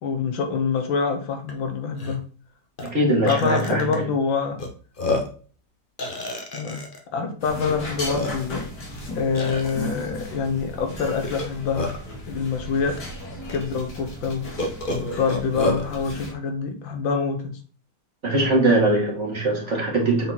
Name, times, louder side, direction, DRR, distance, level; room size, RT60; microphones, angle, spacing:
voice 1, 0.0-2.2 3.2-4.6 6.5-6.8 7.1-8.6 9.1-11.9 12.3-13.0 13.5-14.5 15.0-17.6, left 5 dB, 80° left, 6 dB, 1.9 m, -25 dB
Burping eructation, 1.5-1.6 1.9-2.2 2.8-2.9 3.3-4.0 4.6-4.7 5.0-5.4 6.0-7.0 7.7-7.8 8.1-8.6 9.3-9.7 11.2-12.1 13.0-13.1 13.5-13.6 14.6-15.9, left 2 dB, 35° left, 1.1 m, -28 dB
voice 2, 2.8-4.0 18.2-20.3, right 2 dB, 40° right, -2 dB, 2.3 m, -21 dB
sound 1, 7.4-16.3, equal, 60° left, 2.6 m, -36 dB
7.7 x 4.1 x 4.3 m, 0.41 s
omnidirectional pair, 2.1 m